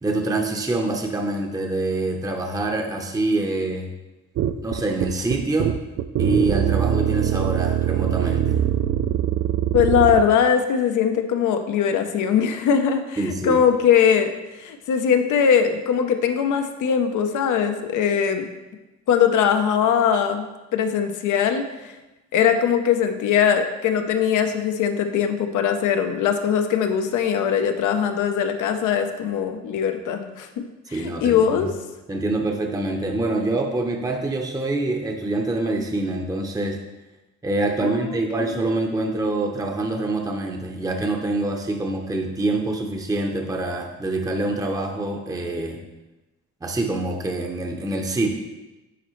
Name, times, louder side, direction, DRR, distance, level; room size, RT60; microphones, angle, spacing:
voice 1, 0.0-3.9 4.6-5.7 6.2-8.6 13.2-13.6 30.9-31.7 32.1-36.8 37.4-45.8 46.6-48.3, right 2 dB, 10° right, 2 dB, 0.7 m, -25 dB
sound 1, 4.4-10.3, right 10 dB, 50° right, 0.4 m, -22 dB
voice 2, 9.7-14.3 14.6-18.5 19.1-21.9 22.3-31.7 37.8-38.7, left 7 dB, 80° left, 7 dB, 0.8 m, -21 dB
9.9 x 4.1 x 3.1 m, 1.1 s
cardioid pair, 90°, 30 cm